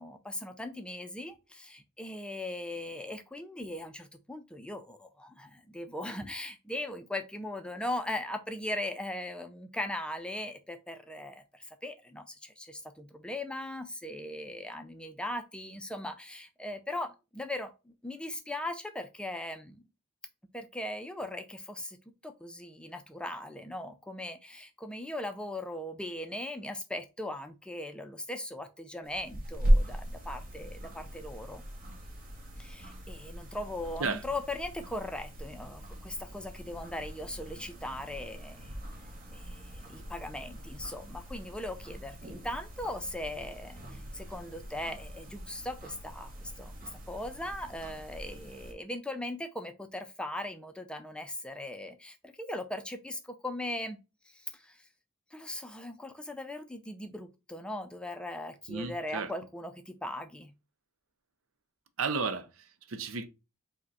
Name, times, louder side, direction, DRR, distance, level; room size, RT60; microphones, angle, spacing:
voice 1, 0.0-19.8 20.5-22.0 22.2-31.6 32.6-38.8 39.3-54.0 54.3-54.8 55.3-60.5, left 1 dB, 5° left, 0.3 m, -39 dB
sound 1, 29.1-48.7, equal, 45° right, 1.0 m, -37 dB
voice 2, 58.7-59.3 62.0-63.3, right 4 dB, 80° right, 0.6 m, -33 dB
5.1 x 2.2 x 3.9 m
head